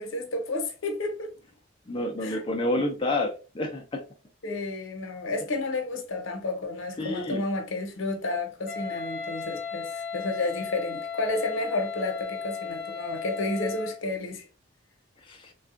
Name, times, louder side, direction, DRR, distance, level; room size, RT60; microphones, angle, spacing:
voice 1, 0.0-1.3 2.2-2.6 4.4-14.4, left 2 dB, 80° left, 0.8 m, -31 dB
voice 2, 1.9-4.0 7.0-7.4 15.2-15.5, left 1 dB, 25° left, 0.4 m, -29 dB
Wind instrument woodwind instrument, 8.7-14.0, left 6 dB, 10° right, 1.3 m, -35 dB
3.4 x 2.3 x 2.5 m
head